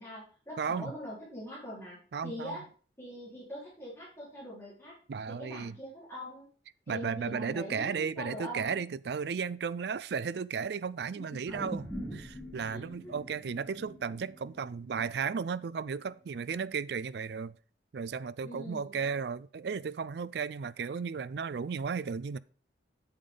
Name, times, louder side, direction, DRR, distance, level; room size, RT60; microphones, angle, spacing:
voice 1, 0.0-2.0 2.2-2.6 3.0-4.9 5.3-6.5 6.9-8.8 12.6-13.1 18.4-19.0, equal, 15° left, 4.0 m, -43 dB
voice 2, 0.6-0.9 2.1-2.6 5.1-5.8 6.9-11.9 12.1-17.6 17.9-22.4, right 6 dB, 60° right, 0.4 m, -34 dB
sound 1, 11.5-16.0 16.4-16.5, equal, ahead, 3.8 m, -44 dB
8.7 x 7.1 x 3.8 m
head